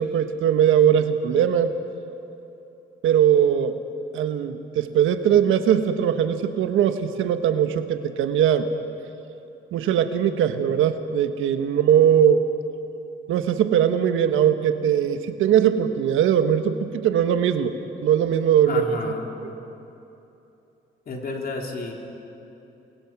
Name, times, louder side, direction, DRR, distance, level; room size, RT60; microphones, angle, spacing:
voice 1, 0.0-1.7 3.0-3.7 4.1-8.7 9.7-12.4 13.3-17.7 18.0-19.0, right 9 dB, 85° right, 8 dB, 1.3 m, -20 dB
voice 2, 18.7-19.3 21.1-21.9, left 3 dB, 50° left, 1 dB, 3.8 m, -31 dB
29.0 x 21.0 x 6.1 m, 2.9 s
cardioid pair, 90°, 20 cm